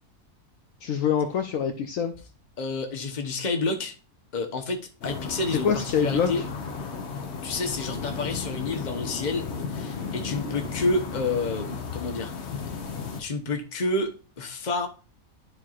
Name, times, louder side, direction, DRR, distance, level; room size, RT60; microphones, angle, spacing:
voice 1, 0.8-2.1 5.6-6.3, left 7 dB, 65° left, 1.0 m, -25 dB
voice 2, 2.6-3.9 4.3-6.4 7.4-12.3 13.2-14.9, left 3 dB, 35° left, 1.0 m, -29 dB
sound 1, 5.0-13.2, left 5 dB, 50° left, 1.1 m, -34 dB
11.0 x 4.6 x 2.5 m
omnidirectional pair, 1.6 m